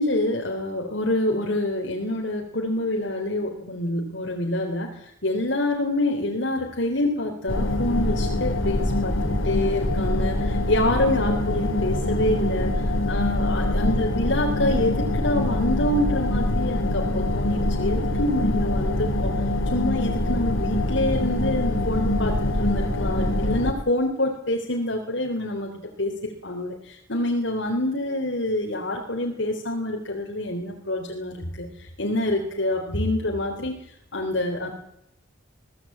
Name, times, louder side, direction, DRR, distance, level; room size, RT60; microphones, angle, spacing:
voice 1, 0.0-12.8 13.1-19.3 19.7-25.7 26.0-33.8 34.1-34.7, left 1 dB, 65° left, 2 dB, 3.7 m, -26 dB
sound 1, 7.5-23.7, left 1 dB, 85° left, 2.6 m, -24 dB
22.5 x 17.0 x 8.8 m, 0.78 s
head